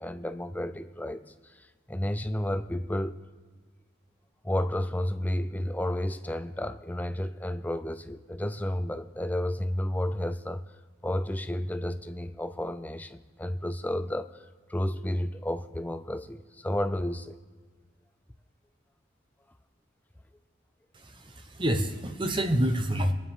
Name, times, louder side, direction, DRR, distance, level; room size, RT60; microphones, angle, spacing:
voice 1, 0.0-3.2 4.4-10.6 11.0-17.4, left 1 dB, 10° left, 10 dB, 0.4 m, -32 dB
voice 2, 20.9-23.1, right 1 dB, 25° right, 6 dB, 1.0 m, -28 dB
23.0 x 9.8 x 3.7 m, 1.5 s
head